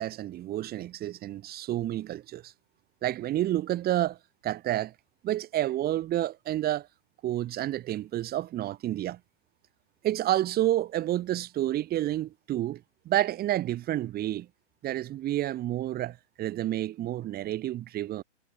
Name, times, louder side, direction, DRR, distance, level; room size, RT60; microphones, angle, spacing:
voice 1, 0.0-2.5 3.0-4.2 4.4-4.9 5.2-6.9 7.2-9.2 10.0-14.5 14.8-18.2, right 13 dB, 25° right, 5.9 m, -29 dB
hypercardioid pair, 135°, 38 cm